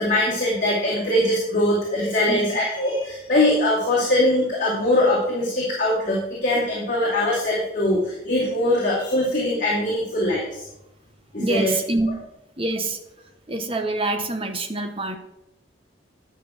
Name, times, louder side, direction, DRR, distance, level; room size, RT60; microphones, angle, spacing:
voice 1, 0.0-10.6 11.3-11.7, left 1 dB, 40° left, -7 dB, 2.7 m, -22 dB
voice 2, 11.4-12.1 12.6-13.0 13.5-15.2, right 2 dB, 30° right, 6 dB, 1.1 m, -25 dB
11.0 x 6.2 x 6.2 m, 0.85 s
head